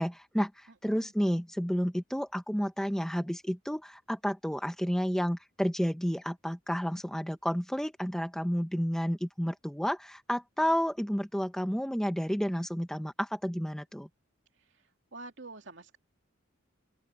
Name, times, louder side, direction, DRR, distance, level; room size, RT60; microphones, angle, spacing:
voice 1, 0.0-14.1, equal, ahead, 1.2 m, -31 dB
voice 2, 15.1-16.0, right 3 dB, 60° right, 2.9 m, -46 dB
open air
head